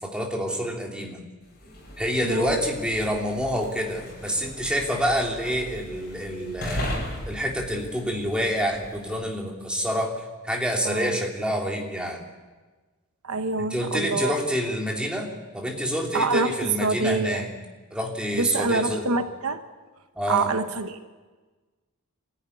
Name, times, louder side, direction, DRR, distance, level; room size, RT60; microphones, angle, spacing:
voice 1, 0.0-1.2 2.0-7.0 7.3-10.1 10.4-12.3 13.6-15.3 15.5-17.5 17.9-19.2 20.1-20.5, equal, 5° right, 0 dB, 2.9 m, -27 dB
sound 1, 1.5-9.3, left 1 dB, 45° left, 7.2 m, -37 dB
voice 2, 2.2-2.6 10.8-11.2 13.3-14.3 16.1-17.4 18.3-19.6 20.3-21.0, right 4 dB, 70° right, 9 dB, 1.1 m, -26 dB
24.5 x 14.5 x 9.8 m, 1.3 s
head